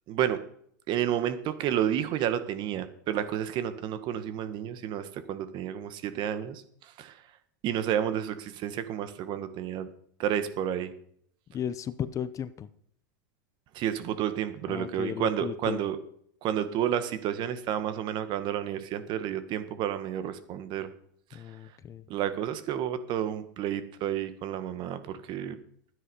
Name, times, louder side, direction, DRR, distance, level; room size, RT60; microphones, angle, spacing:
voice 1, 0.1-0.4 0.9-7.2 7.6-9.9 10.2-10.9 13.7-16.0 16.4-20.9 21.3-21.4 22.1-25.6, right 10 dB, 45° right, 11 dB, 1.6 m, -31 dB
voice 2, 11.5-12.7 14.7-15.8 21.3-22.1, left 9 dB, 30° left, 15 dB, 0.8 m, -35 dB
13.0 x 9.8 x 5.5 m, 0.65 s
hypercardioid pair, 110°, 11 cm